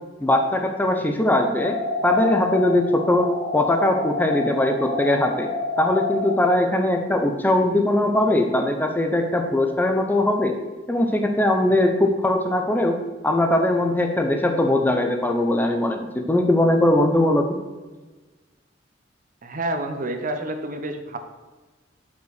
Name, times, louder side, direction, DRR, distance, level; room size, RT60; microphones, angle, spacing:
voice 1, 0.2-1.8 2.0-5.5 5.8-10.5 10.9-13.0 13.2-17.6, left 1 dB, 10° left, 4 dB, 0.5 m, -20 dB
sound 1, 1.3-6.3, left 3 dB, 55° left, 1.7 m, -28 dB
voice 2, 19.4-21.2, right 1 dB, 45° right, 6 dB, 0.7 m, -28 dB
5.6 x 4.5 x 6.3 m, 1.3 s
head